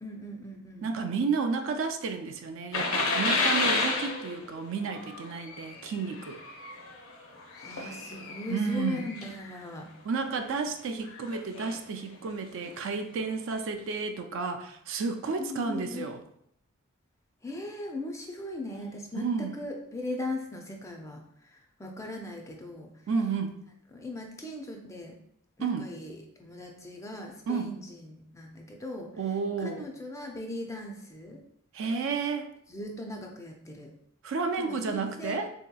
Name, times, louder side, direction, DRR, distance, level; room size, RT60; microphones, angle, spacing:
voice 1, 0.0-0.9 7.5-9.9 15.4-16.1 17.4-19.2 19.5-22.9 23.9-25.2 25.6-29.1 29.6-31.4 32.7-33.9 34.6-35.4, left 2 dB, 15° left, 2 dB, 0.3 m, -39 dB
voice 2, 0.8-6.4 8.5-9.1 10.0-16.2 19.2-19.5 23.1-23.6 25.6-25.9 27.5-27.7 29.2-29.9 31.7-32.5 34.2-35.5, right 5 dB, 60° right, 6 dB, 0.3 m, -31 dB
sound 1, 2.7-9.6 10.2-10.4 11.0-11.8 12.7-12.8 13.2-13.3, left 3 dB, 70° left, 0.6 m, -31 dB
3.9 x 2.8 x 2.2 m, 0.71 s
head